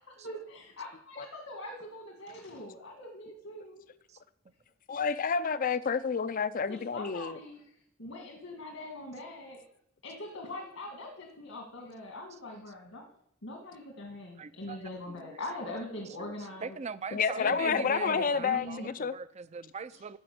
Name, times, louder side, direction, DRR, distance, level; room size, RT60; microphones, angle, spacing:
voice 1, 0.1-3.8 6.7-7.7 8.0-9.6 10.0-13.0 13.4-16.8 17.3-19.0 19.9-20.0, left 1 dB, 75° left, 1.8 m, -42 dB
voice 2, 4.9-7.4 17.1-19.1, left 6 dB, 40° left, 0.5 m, -29 dB
voice 3, 14.4-14.8 15.2-15.4 16.2-16.3 16.6-20.2, right 5 dB, 30° right, 0.4 m, -41 dB
12.0 x 5.1 x 7.8 m
head